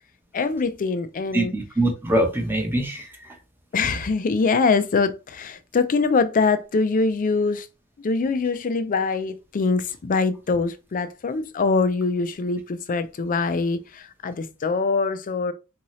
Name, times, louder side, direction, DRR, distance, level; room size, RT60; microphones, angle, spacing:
voice 1, 0.3-1.5 3.7-7.7 8.0-15.5, left 4 dB, 40° left, 0.4 m, -23 dB
voice 2, 1.3-3.3, right 1 dB, 10° right, 0.8 m, -23 dB
3.6 x 2.8 x 3.0 m
head